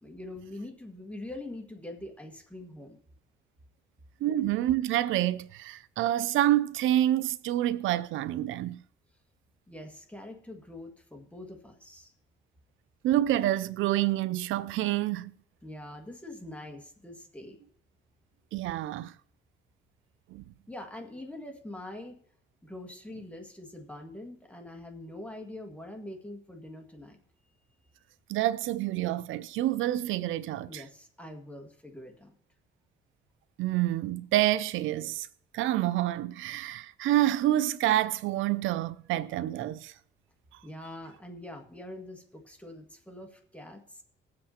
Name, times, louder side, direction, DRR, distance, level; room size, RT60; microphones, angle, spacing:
voice 1, 0.0-3.0 9.7-12.1 15.6-17.6 20.7-22.2 22.6-27.2 30.7-32.3 40.6-44.0, left 1 dB, 5° left, 1.9 m, -44 dB
voice 2, 4.2-8.8 13.0-15.3 18.5-19.2 20.3-20.4 28.3-30.8 33.6-35.3 35.5-39.9, right 14 dB, 85° right, 0.4 m, -27 dB
20.5 x 7.8 x 2.9 m
cardioid pair, 90°, 20 cm